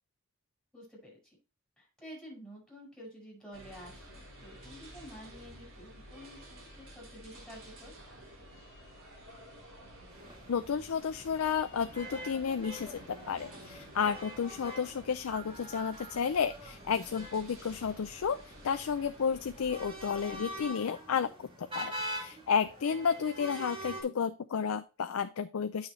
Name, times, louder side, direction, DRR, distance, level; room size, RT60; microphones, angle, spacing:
voice 1, 0.7-1.4 1.8-8.0, equal, ahead, -3 dB, 5.2 m, -50 dB
sound 1, 3.5-20.7, equal, 70° right, 3.7 m, -52 dB
sound 2, 10.1-24.0, equal, 25° right, 2.5 m, -45 dB
voice 2, 10.5-13.0 13.3-25.9, left 6 dB, 85° left, 10 dB, 0.5 m, -32 dB
8.8 x 6.4 x 3.1 m, 0.33 s
head